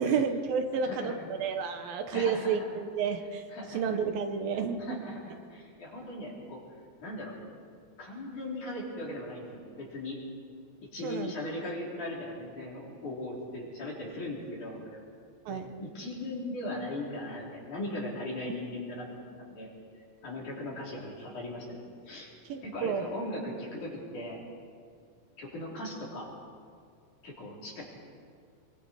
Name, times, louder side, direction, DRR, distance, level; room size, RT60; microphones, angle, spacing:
voice 1, 0.0-3.4 3.7-5.1 11.0-11.3 15.5-15.7 22.5-23.1, right 6 dB, 75° right, 6 dB, 2.8 m, -31 dB
voice 2, 0.7-1.2 2.1-2.7 3.5-4.0 4.8-6.6 7.0-7.3 8.0-10.2 10.9-15.0 15.5-19.2 19.5-19.7 20.2-21.8 22.1-22.3 22.6-24.4 25.4-26.3 27.2-27.8, left 1 dB, 50° left, -4 dB, 5.7 m, -39 dB
26.0 x 23.5 x 4.9 m, 2.2 s
omnidirectional pair, 4.4 m